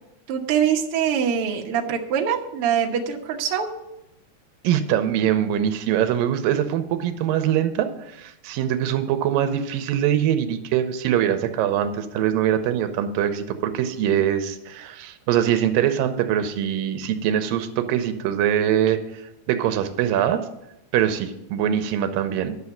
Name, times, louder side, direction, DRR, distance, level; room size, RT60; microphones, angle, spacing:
voice 1, 0.3-3.7, right 8 dB, 60° right, 1 dB, 1.5 m, -23 dB
voice 2, 4.6-19.0 19.5-20.5 20.9-22.6, right 10 dB, 85° right, 9 dB, 2.4 m, -23 dB
11.0 x 6.4 x 7.1 m, 0.89 s
omnidirectional pair, 4.0 m